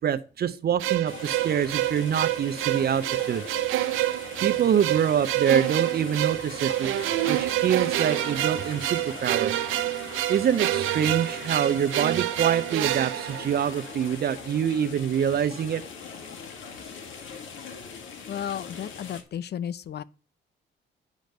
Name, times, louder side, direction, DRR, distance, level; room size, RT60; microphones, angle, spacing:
voice 1, 0.0-3.4 4.4-6.9 7.2-9.5 10.3-15.8, right 8 dB, 50° right, 0.7 m, -25 dB
sound 1, 0.8-14.1, right 15 dB, 85° right, 0.7 m, -28 dB
sound 2, 1.1-19.2, left 5 dB, 75° left, 1.9 m, -41 dB
voice 2, 18.3-20.0, left 9 dB, 55° left, 0.6 m, -33 dB
9.3 x 5.1 x 6.6 m
cardioid pair, 90°, 20 cm